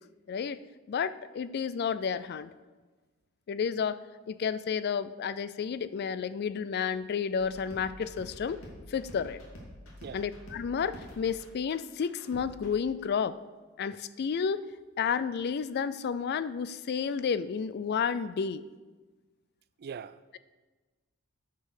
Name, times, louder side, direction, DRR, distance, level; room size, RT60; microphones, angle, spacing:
voice 1, 0.3-0.6 0.9-2.5 3.5-4.0 4.3-8.6 8.9-9.4 10.1-13.4 13.8-14.7 15.0-18.6, left 6 dB, 50° left, 0.3 m, -31 dB
sound 1, 7.4-12.7, equal, 90° left, 2.5 m, -48 dB
voice 2, 19.8-20.4, right 6 dB, 50° right, 0.4 m, -42 dB
10.0 x 5.4 x 6.5 m
head